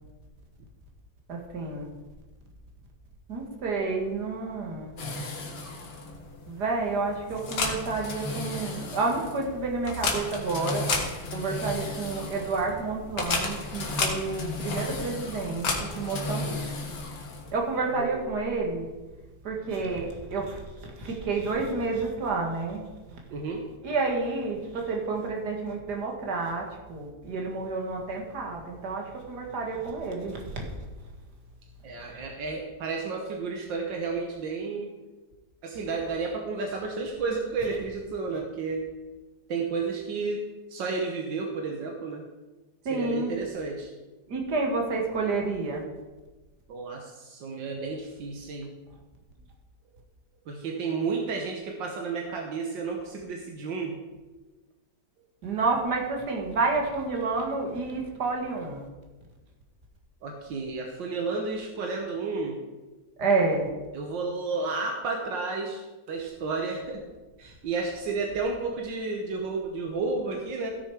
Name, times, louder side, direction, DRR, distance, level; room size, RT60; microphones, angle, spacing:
voice 1, 1.3-1.9 3.3-4.9 6.5-10.8 11.3-16.9 17.5-18.9 19.4-20.6 21.0-22.8 23.8-30.5 42.9-43.3 44.3-45.8 55.4-58.8 63.2-63.7, right 3 dB, 65° right, 0 dB, 2.4 m, -29 dB
sound 1, 5.0-17.7, left 3 dB, 70° left, 2.2 m, -33 dB
voice 2, 17.7-18.3 23.3-23.6 31.8-34.9 35.6-38.9 39.5-40.4 40.7-42.2 42.9-43.9 46.7-48.7 50.5-54.0 60.2-62.6 63.9-65.8 66.1-67.0 67.4-70.8, right 4 dB, 85° right, 2 dB, 1.8 m, -32 dB
15.5 x 6.6 x 4.9 m, 1.2 s
omnidirectional pair, 2.0 m